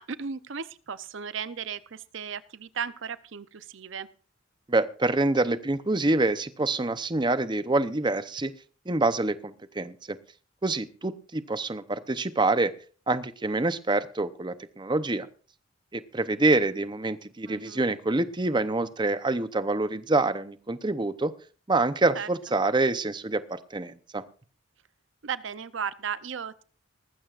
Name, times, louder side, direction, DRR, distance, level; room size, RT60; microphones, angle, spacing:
voice 1, 0.0-4.1 17.5-17.8 22.1-22.3 25.2-26.6, right 6 dB, 65° right, 15 dB, 0.6 m, -35 dB
voice 2, 4.7-8.5 8.9-10.2 10.6-12.7 13.1-15.3 15.9-21.3 21.7-24.2, right 2 dB, 25° right, 12 dB, 0.7 m, -26 dB
19.5 x 15.0 x 2.5 m, 0.39 s
head